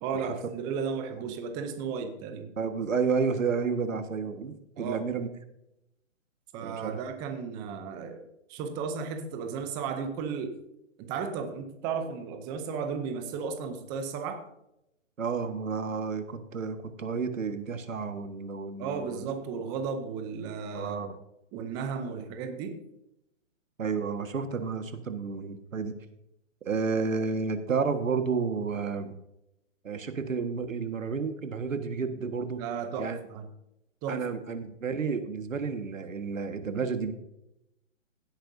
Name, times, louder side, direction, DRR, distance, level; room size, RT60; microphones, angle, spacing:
voice 1, 0.0-2.5 4.8-5.0 6.5-10.6 11.0-14.4 18.8-21.0 21.5-22.8 32.6-33.5 34.0-34.2, right 6 dB, 10° right, 7 dB, 0.6 m, -34 dB
voice 2, 2.6-5.3 6.6-7.0 15.2-19.3 20.7-21.1 23.8-25.9 26.6-29.1 29.8-32.6 33.0-33.2 34.1-37.1, right 5 dB, 85° right, 8 dB, 1.7 m, -31 dB
16.5 x 9.1 x 2.7 m, 0.86 s
hypercardioid pair, 150°, 38 cm